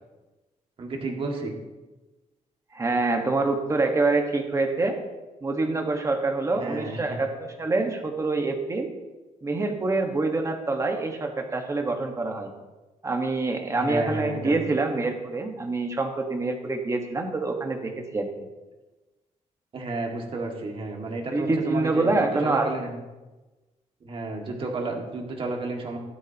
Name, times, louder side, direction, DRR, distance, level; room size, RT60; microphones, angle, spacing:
voice 1, 0.8-1.5 6.5-7.2 13.7-14.7 19.7-23.0 24.0-26.0, right 2 dB, 45° right, 0 dB, 2.1 m, -32 dB
voice 2, 2.7-5.0 5.4-8.9 9.4-12.5 13.0-18.3 21.3-22.7, right 3 dB, 25° right, 3 dB, 1.5 m, -26 dB
16.0 x 12.0 x 3.0 m, 1.1 s
wide cardioid pair, 160°, 13 cm